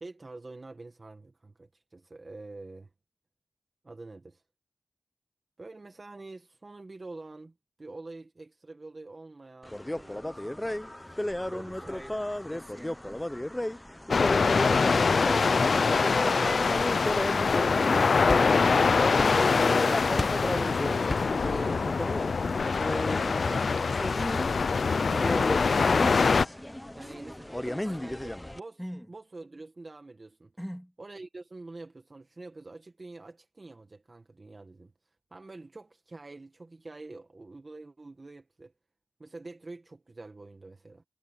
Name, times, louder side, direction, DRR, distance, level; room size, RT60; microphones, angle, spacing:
voice 1, 0.0-2.9 3.8-4.4 5.6-11.2 11.5-12.0 19.4-22.3 23.2-24.5 24.8-25.6 27.0-28.8 29.1-30.5 31.0-38.7 39.2-41.0, right 2 dB, 40° right, 1.9 m, -46 dB
sound 1, 9.6-28.6, left 1 dB, 15° left, 0.8 m, -34 dB
voice 2, 11.7-13.2 26.6-28.3 28.8-29.1 30.6-30.9, equal, ahead, 2.6 m, -46 dB
sound 2, 14.1-26.4, left 4 dB, 70° left, 0.5 m, -24 dB
sound 3, 18.3-18.8 19.2-19.8 20.2-20.5 21.1-21.5, left 2 dB, 30° left, 1.6 m, -34 dB
cardioid pair, 65°, 0 cm